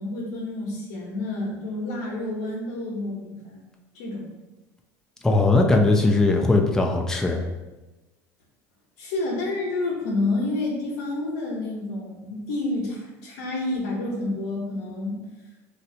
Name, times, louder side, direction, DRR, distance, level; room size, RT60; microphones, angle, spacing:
voice 1, 0.0-3.6 3.9-4.3 9.0-15.2, left 2 dB, 85° left, -3 dB, 1.0 m, -29 dB
voice 2, 5.2-7.4, left 2 dB, 5° left, 1 dB, 0.4 m, -19 dB
3.2 x 2.7 x 2.7 m, 1.1 s
supercardioid pair, 100°, 8 cm